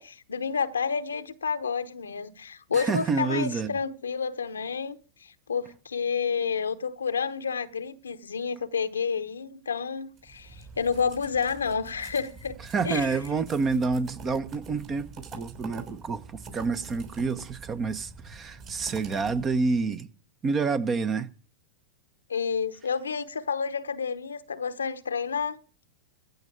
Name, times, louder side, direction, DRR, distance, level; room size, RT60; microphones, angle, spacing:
voice 1, 0.0-12.6 12.8-13.2 22.3-25.6, left 6 dB, 90° left, 1.0 m, -30 dB
voice 2, 2.7-3.8 12.7-20.1 20.4-21.3, right 4 dB, 25° right, 1.1 m, -28 dB
sound 1, 10.2-19.9, right 4 dB, 40° right, 6.3 m, -45 dB
15.0 x 5.5 x 9.2 m
hypercardioid pair, 105°, 0 cm